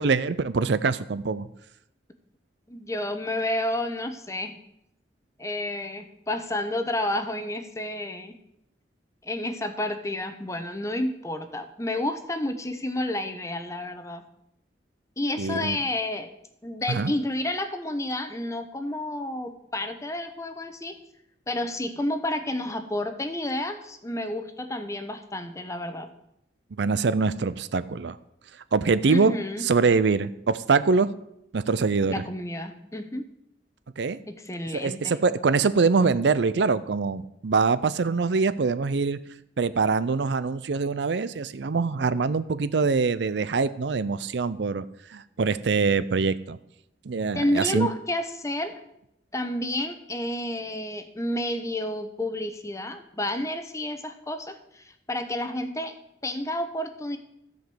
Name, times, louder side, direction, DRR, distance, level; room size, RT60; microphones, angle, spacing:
voice 1, 0.0-1.5 15.4-15.8 16.9-17.1 26.8-28.2 28.7-29.3 29.6-31.1 31.5-32.1 34.0-34.2 34.7-39.2 39.6-44.8 45.1-46.6 47.1-47.9, right 4 dB, 70° right, 15 dB, 0.5 m, -24 dB
voice 2, 2.7-4.6 5.4-8.3 9.2-14.2 15.2-16.3 16.6-21.0 21.5-26.1 29.1-29.6 32.1-33.2 34.3-35.2 47.3-48.8 49.3-56.0 56.2-57.2, left 1 dB, 15° left, 8 dB, 0.9 m, -30 dB
13.5 x 5.1 x 7.7 m, 0.79 s
head